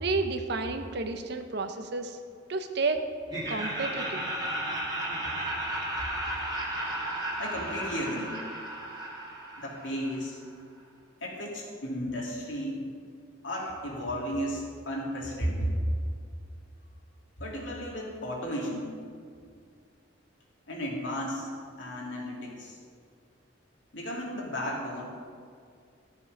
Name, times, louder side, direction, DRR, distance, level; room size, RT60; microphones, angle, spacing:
voice 1, 0.0-2.2 2.5-3.0 3.5-4.3, right 3 dB, 60° right, 7 dB, 0.9 m, -31 dB
Laughter, 3.3-10.2, right 1 dB, 20° right, 2.2 m, -34 dB
voice 2, 7.4-8.4 9.6-10.4 11.2-12.8 13.4-15.7 17.4-18.9 20.7-21.5 21.8-22.8 23.9-25.0, equal, 80° left, -2 dB, 2.5 m, -34 dB
14.0 x 7.2 x 5.3 m, 2.2 s
head